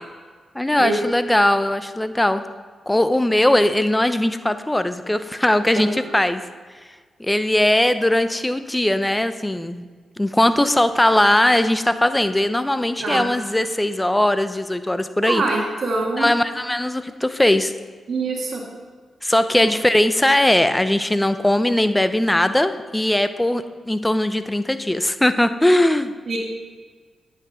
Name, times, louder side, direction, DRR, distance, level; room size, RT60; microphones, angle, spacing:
voice 1, 0.5-2.4 2.9-6.4 7.2-9.8 10.2-15.4 16.2-17.7 19.2-26.1, left 1 dB, 15° left, 11 dB, 0.7 m, -19 dB
voice 2, 15.2-16.3 18.1-18.6 19.6-19.7 26.3-26.4, right 3 dB, 65° right, -2 dB, 1.8 m, -24 dB
9.1 x 6.1 x 5.6 m, 1.5 s
supercardioid pair, 40°, 0 cm